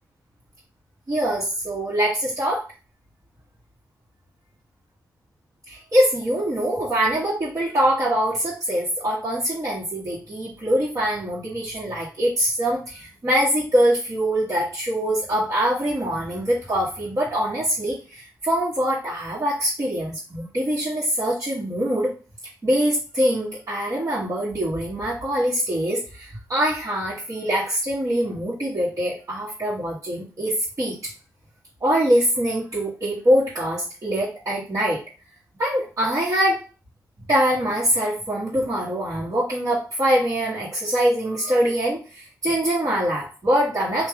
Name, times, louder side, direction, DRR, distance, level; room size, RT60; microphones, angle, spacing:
voice 1, 1.1-2.6 5.7-22.1 22.6-31.1 31.8-35.0 35.6-36.6 37.3-44.1, equal, 45° right, -8 dB, 1.5 m, -23 dB
3.4 x 2.7 x 3.6 m, 0.35 s
cardioid pair, 60°, 8 cm